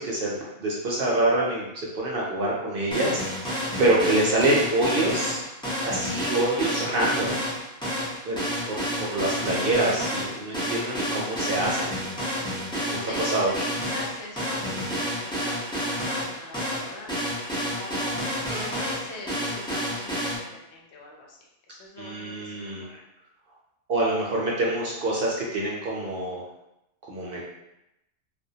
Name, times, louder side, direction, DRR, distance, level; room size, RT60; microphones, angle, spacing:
voice 1, 0.0-1.7 1.9-3.5 3.8-5.4 5.8-7.4 8.3-8.4 8.7-11.9 12.9-13.5 22.0-22.8 23.9-26.4 27.1-27.5, right 2 dB, 60° right, -4 dB, 0.6 m, -26 dB
sound 1, 2.9-20.4, equal, 5° left, 0.4 m, -30 dB
voice 2, 12.7-17.1 17.6-21.4 21.7-23.0, left 2 dB, 70° left, -2 dB, 0.8 m, -42 dB
2.2 x 2.1 x 2.7 m, 0.87 s
omnidirectional pair, 1.2 m